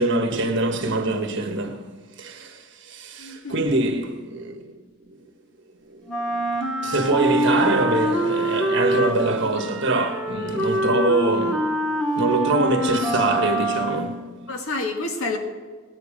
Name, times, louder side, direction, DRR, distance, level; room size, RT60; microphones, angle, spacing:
voice 1, 0.0-1.9 2.2-4.7 5.1-5.2 5.8-6.5 6.8-11.7 12.1-14.3, right 2 dB, 55° right, 1.5 m, -24 dB
voice 2, 3.2-3.7 14.5-15.4, left 2 dB, 80° left, 1.7 m, -28 dB
Wind instrument woodwind instrument, 6.1-14.2, right 1 dB, ahead, 1.8 m, -24 dB
19.0 x 9.5 x 5.1 m
head